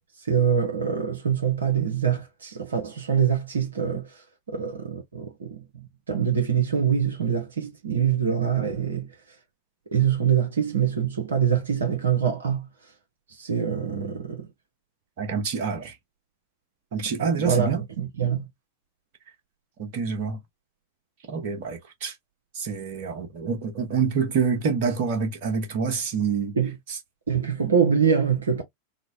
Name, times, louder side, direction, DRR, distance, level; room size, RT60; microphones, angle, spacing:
voice 1, 0.2-9.1 9.9-12.9 13.3-14.5 17.2-18.5 26.6-26.8 27.3-28.6, right 7 dB, 70° right, 0.7 m, -25 dB
voice 2, 13.7-14.1 15.2-15.9 16.9-17.8 19.8-20.4 21.3-22.1 22.5-26.6, right 5 dB, 50° right, 1.1 m, -27 dB
4.0 x 2.1 x 2.3 m
figure-of-eight pair, 90°, 0 cm